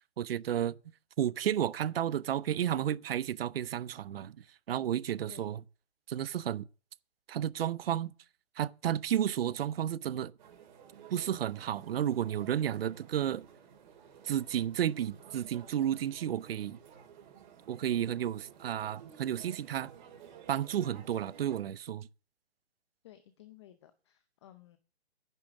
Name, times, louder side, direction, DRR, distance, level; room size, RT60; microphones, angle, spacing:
voice 1, 0.2-0.8 1.2-4.4 4.7-5.6 6.1-6.6 7.3-8.1 8.6-10.3 11.1-13.5 14.2-16.8 17.7-19.9 20.5-22.1, right 10 dB, 60° right, 0.6 m, -32 dB
sound 1, 10.4-21.6, right 8 dB, 45° right, 3.5 m, -54 dB
voice 2, 23.0-24.8, left 12 dB, 25° left, 0.6 m, -55 dB
10.0 x 7.1 x 7.1 m
hypercardioid pair, 155°, 33 cm